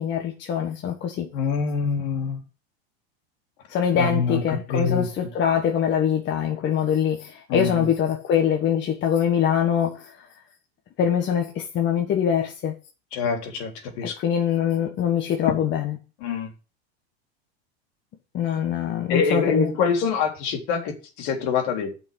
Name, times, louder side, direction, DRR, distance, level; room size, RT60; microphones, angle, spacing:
voice 1, 0.0-1.3 3.7-10.3 11.0-12.7 14.0-16.0 18.3-19.7, left 8 dB, 35° left, 1.6 m, -23 dB
voice 2, 1.3-2.4 4.0-4.4 4.7-5.1 7.5-7.9 13.1-14.1 16.2-16.5 19.1-21.9, left 5 dB, 60° left, 3.4 m, -25 dB
8.6 x 5.5 x 7.5 m
supercardioid pair, 120°, 32 cm